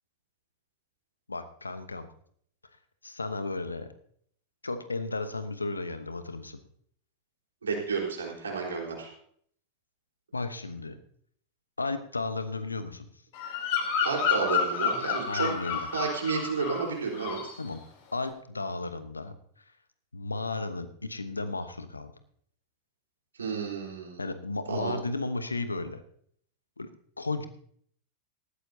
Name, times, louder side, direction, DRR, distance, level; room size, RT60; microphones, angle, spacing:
voice 1, 1.3-2.1 3.0-3.9 4.6-6.6 10.3-11.0 11.8-13.1 15.2-15.8 17.6-17.8 18.1-19.3 20.1-22.1 24.2-26.0 26.8-26.9 27.2-27.5, left 3 dB, 80° left, 11 dB, 1.0 m, -34 dB
voice 2, 7.6-9.1 14.0-17.5 23.3-24.2 24.7-25.0, right 5 dB, 70° right, -1 dB, 4.1 m, -31 dB
Bird vocalization bird call bird song, 13.3-16.9 17.1-17.6, left 6 dB, 50° left, 3.6 m, -30 dB
18.0 x 13.5 x 2.8 m, 0.63 s
figure-of-eight pair, 90°, 0 cm